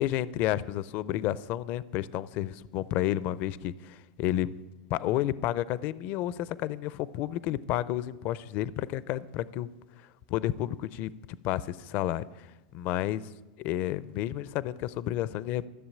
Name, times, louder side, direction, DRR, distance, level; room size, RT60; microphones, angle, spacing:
voice 1, 0.0-4.5 4.9-9.7 10.3-11.1 11.4-12.5 12.7-13.2 13.6-15.7, left 13 dB, 45° left, 18 dB, 0.5 m, -31 dB
13.5 x 7.0 x 8.5 m, 1.1 s
hypercardioid pair, 120°, 4 cm